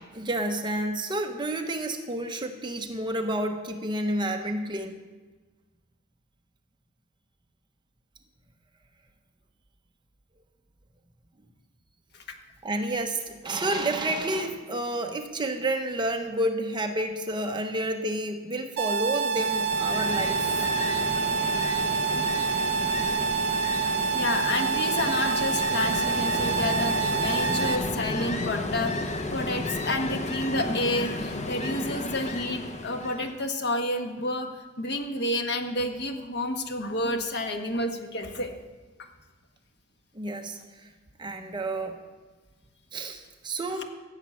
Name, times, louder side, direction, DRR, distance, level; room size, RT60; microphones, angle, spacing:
voice 1, 0.0-5.0 12.6-20.7 29.6-29.8 40.1-40.9 41.2-42.0 42.9-43.8, right 1 dB, 20° right, 4 dB, 0.9 m, -30 dB
sound 1, 18.8-27.8, right 5 dB, 50° right, 1.3 m, -27 dB
Ocean, 19.3-33.4, left 2 dB, 30° left, 0.9 m, -33 dB
voice 2, 22.1-22.5 24.1-34.5 34.8-38.5, left 1 dB, 50° left, 5 dB, 1.4 m, -30 dB
15.0 x 7.3 x 8.5 m, 1.3 s
head